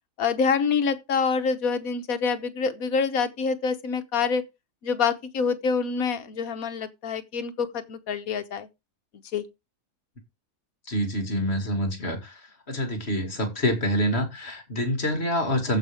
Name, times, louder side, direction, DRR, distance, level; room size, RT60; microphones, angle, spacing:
voice 1, 0.2-4.4 4.8-8.7 9.3-9.5, left 5 dB, 65° left, 1.5 m, -26 dB
voice 2, 10.9-12.4 12.7-15.8, equal, 40° left, 2.5 m, -26 dB
14.5 x 5.5 x 3.6 m
omnidirectional pair, 1.7 m